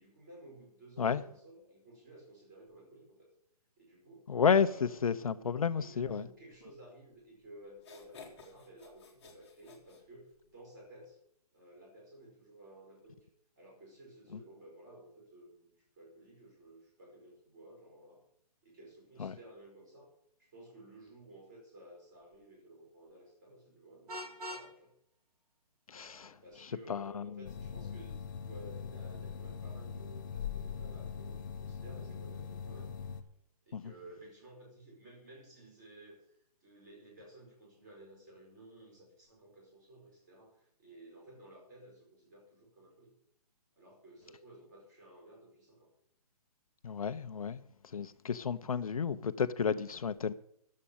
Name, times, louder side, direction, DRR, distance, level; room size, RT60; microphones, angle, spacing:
voice 1, 0.0-3.3 3.8-4.2 4.6-11.2 11.5-13.2 13.6-15.7 16.0-18.2 18.6-20.1 20.5-24.9 25.9-32.9 33.6-43.1 43.8-45.9, right 1 dB, 30° right, 5.2 m, -55 dB
voice 2, 4.3-6.2 19.2-19.3 25.9-26.3 26.9-27.3 33.7-33.8 46.8-47.6 47.9-50.3, left 6 dB, 60° left, 0.6 m, -31 dB
sound 1, 7.2-7.3 7.7-10.6, left 5 dB, 10° left, 1.4 m, -55 dB
Vehicle horn car horn honking, 24.1-24.7, equal, 75° right, 2.0 m, -42 dB
sound 2, 27.4-33.2, left 6 dB, 30° left, 0.8 m, -42 dB
11.0 x 7.5 x 8.6 m
hypercardioid pair, 180°, 20 cm